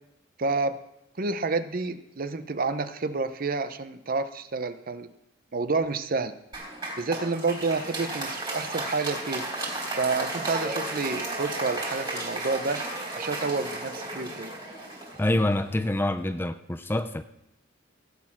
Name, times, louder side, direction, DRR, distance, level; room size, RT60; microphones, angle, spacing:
voice 1, 0.4-0.8 1.2-5.1 5.5-6.3 7.0-9.5 10.0-12.8 13.2-14.5, right 3 dB, 45° right, 12 dB, 0.7 m, -29 dB
Applause, 6.5-15.9, right 2 dB, 25° right, 3.9 m, -34 dB
voice 2, 15.2-17.2, left 1 dB, 10° left, 10 dB, 0.5 m, -26 dB
16.5 x 8.6 x 5.9 m, 0.85 s
head